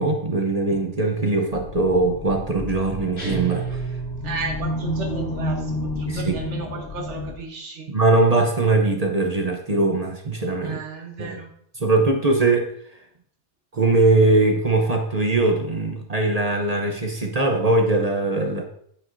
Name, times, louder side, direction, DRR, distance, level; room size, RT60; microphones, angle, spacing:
voice 1, 0.0-4.0 6.1-6.3 7.9-10.8 11.2-11.4 11.8-12.7 13.7-18.7, right 2 dB, 40° right, 2 dB, 0.8 m, -21 dB
sound 1, 1.5-7.3, left 1 dB, 80° left, 1.8 m, -31 dB
sound 2, 3.2-4.9, right 5 dB, 65° left, 2.6 m, -31 dB
voice 2, 4.2-7.9 10.6-11.5, right 3 dB, 80° right, 2 dB, 1.3 m, -33 dB
9.1 x 7.7 x 2.6 m, 0.67 s
omnidirectional pair, 1.2 m